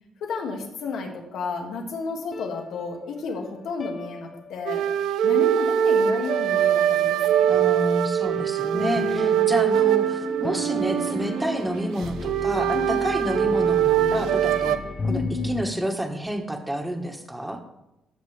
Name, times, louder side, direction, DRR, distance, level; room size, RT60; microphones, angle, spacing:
voice 1, 0.2-4.9 5.2-7.5 8.7-9.5 12.7-13.0 15.0-15.6, left 4 dB, 80° left, 2 dB, 1.7 m, -32 dB
sound 1, 2.3-5.1 8.7-15.6, left 3 dB, 40° left, 0.7 m, -35 dB
sound 2, 4.7-14.8, right 9 dB, 85° right, 0.5 m, -22 dB
voice 2, 7.5-14.8 15.0-17.6, right 1 dB, 10° right, 5 dB, 1.4 m, -29 dB
14.5 x 6.5 x 3.4 m, 0.93 s
cardioid pair, 90°, 0 cm